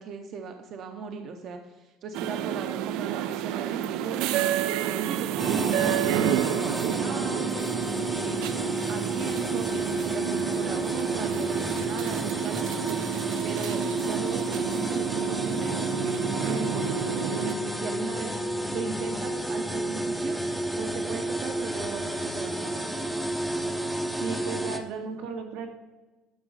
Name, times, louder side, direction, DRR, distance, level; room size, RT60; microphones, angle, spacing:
voice 1, 0.0-7.6 8.1-8.5 8.9-15.9 16.3-18.4 18.7-20.4 20.8-22.9, right 5 dB, 40° right, 5 dB, 0.7 m, -38 dB
sound 1, 2.1-17.5, right 11 dB, 70° right, 0.4 m, -30 dB
sound 2, 5.4-24.8, right 1 dB, 5° right, 0.6 m, -31 dB
voice 2, 24.2-25.8, right 5 dB, 90° right, 2 dB, 1.8 m, -35 dB
11.5 x 6.2 x 4.8 m, 1.2 s
cardioid pair, 175°, 0 cm